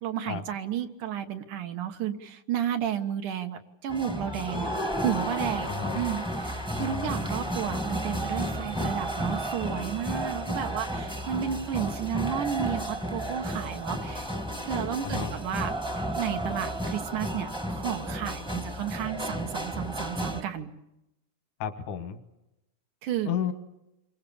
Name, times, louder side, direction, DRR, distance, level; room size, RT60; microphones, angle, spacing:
voice 1, 0.0-4.7 5.0-14.3 14.7-15.7 16.2-20.7 23.0-23.3, right 9 dB, 90° right, 6 dB, 3.0 m, -32 dB
sound 1, 3.9-20.4, equal, 5° right, 0.6 m, -32 dB
voice 2, 5.7-6.0 6.8-7.1 15.0-15.3 21.6-22.2 23.3-23.5, left 8 dB, 85° left, 8 dB, 3.1 m, -32 dB
28.0 x 23.5 x 7.1 m, 0.89 s
omnidirectional pair, 3.5 m